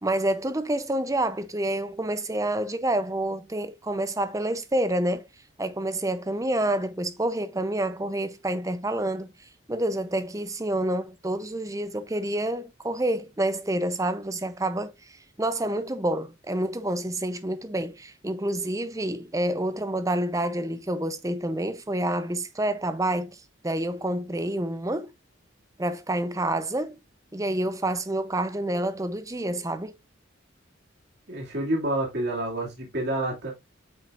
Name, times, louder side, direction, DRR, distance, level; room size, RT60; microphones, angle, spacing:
voice 1, 0.0-5.3 5.6-9.3 9.7-23.4 23.6-25.1 25.8-27.0 27.3-30.0, right 1 dB, 15° right, 0.6 m, -28 dB
voice 2, 31.3-33.5, right 1 dB, 55° right, 2.6 m, -28 dB
8.8 x 5.6 x 2.5 m
head